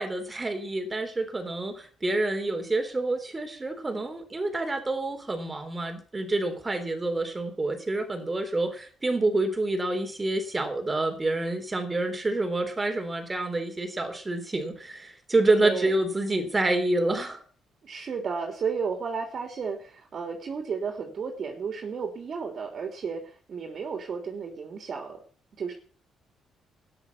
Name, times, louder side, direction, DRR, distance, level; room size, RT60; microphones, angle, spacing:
voice 1, 0.0-17.4, right 2 dB, 20° right, 6 dB, 3.6 m, -28 dB
voice 2, 15.6-16.0 17.8-25.2 25.6-25.7, right 5 dB, 50° right, 3 dB, 3.3 m, -33 dB
13.5 x 10.0 x 7.1 m, 0.43 s
cardioid pair, 90°, 0 cm